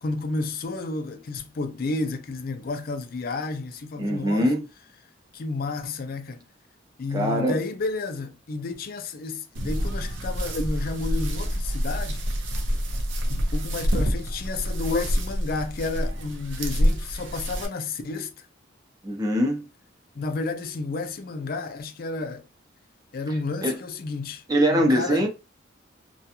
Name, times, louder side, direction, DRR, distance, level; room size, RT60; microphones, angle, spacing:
voice 1, 0.0-4.5 5.3-6.4 7.0-12.2 13.3-18.3 20.1-22.4 23.1-24.4 24.7-25.3, left 3 dB, 50° left, 0.4 m, -31 dB
voice 2, 4.0-4.6 7.1-7.6 19.0-19.7 23.6-23.8 24.5-25.3, equal, 20° right, 0.6 m, -22 dB
sound 1, 9.5-17.6, equal, 80° right, 0.6 m, -27 dB
2.4 x 2.2 x 2.8 m
head